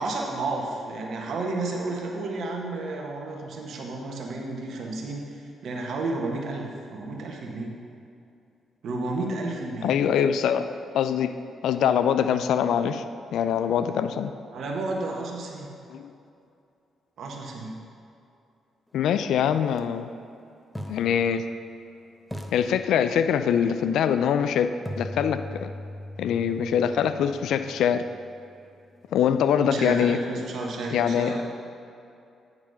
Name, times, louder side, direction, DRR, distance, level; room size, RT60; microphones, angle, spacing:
voice 1, 0.0-7.8 8.8-10.0 14.5-15.7 17.2-17.7 29.6-31.4, right 2 dB, 65° right, 0 dB, 1.3 m, -31 dB
voice 2, 9.8-11.3 11.6-13.0 13.3-14.3 15.9-16.1 18.9-20.1 20.9-21.4 22.5-24.7 25.0-25.7 26.2-28.0 29.1-30.2 30.9-31.4, left 8 dB, 70° left, 10 dB, 0.4 m, -23 dB
sound 1, 19.7-19.8 20.8-21.9 22.3-23.6 24.9-28.8, left 1 dB, 5° left, 0.9 m, -40 dB
9.5 x 4.7 x 5.6 m, 2.5 s
hypercardioid pair, 45°, 0 cm